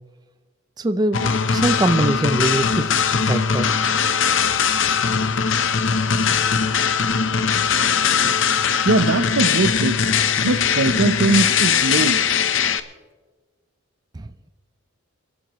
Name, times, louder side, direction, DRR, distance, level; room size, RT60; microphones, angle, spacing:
voice 1, 0.8-3.7 14.1-14.5, right 2 dB, 20° right, 10 dB, 0.4 m, -23 dB
sound 1, 1.1-12.8, left 6 dB, 60° left, 0.8 m, -20 dB
voice 2, 8.8-10.0 10.4-12.2, right 3 dB, 70° right, 13 dB, 0.8 m, -20 dB
26.0 x 12.5 x 3.1 m, 1.3 s
head